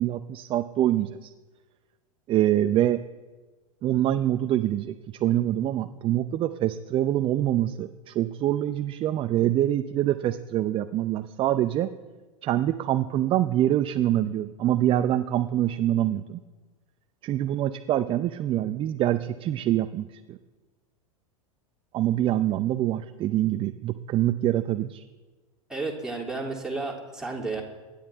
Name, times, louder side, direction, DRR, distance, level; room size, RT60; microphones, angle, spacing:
voice 1, 0.0-1.3 2.3-3.0 3.8-4.9 5.2-11.9 12.4-16.4 17.2-20.4 21.9-25.0, right 12 dB, 30° right, 10 dB, 0.6 m, -25 dB
voice 2, 25.7-27.6, right 3 dB, 5° right, -2 dB, 3.1 m, -32 dB
24.5 x 10.0 x 3.5 m, 1.3 s
figure-of-eight pair, 90°, 18 cm